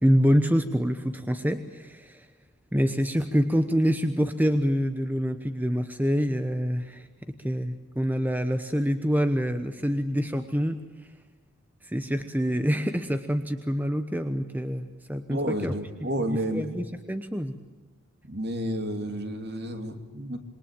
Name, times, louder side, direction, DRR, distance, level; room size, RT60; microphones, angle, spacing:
voice 1, 0.0-2.3 2.7-7.1 7.4-11.1 11.8-15.7 16.0-17.5, equal, 10° right, 8 dB, 1.0 m, -26 dB
voice 2, 15.3-16.7 18.2-20.4, right 1 dB, 45° right, 7 dB, 2.7 m, -31 dB
27.0 x 22.5 x 8.9 m, 1.3 s
head